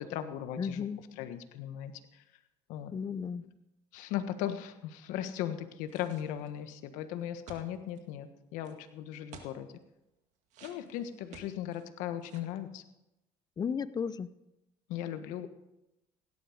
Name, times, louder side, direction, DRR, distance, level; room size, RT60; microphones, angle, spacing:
voice 1, 0.0-0.8 1.1-1.9 2.7-3.0 3.9-9.7 10.6-12.8 14.9-15.5, left 11 dB, 80° left, 9 dB, 1.4 m, -37 dB
voice 2, 0.5-1.0 2.9-3.4 13.6-14.3, left 6 dB, 30° left, 17 dB, 0.7 m, -34 dB
sound 1, 5.9-6.6 7.5-8.0 8.6-8.8 9.3-9.6 10.5-11.8 12.2-12.6, right 6 dB, 65° right, 2.1 m, -52 dB
17.0 x 11.0 x 5.1 m, 0.93 s
supercardioid pair, 90°, 13 cm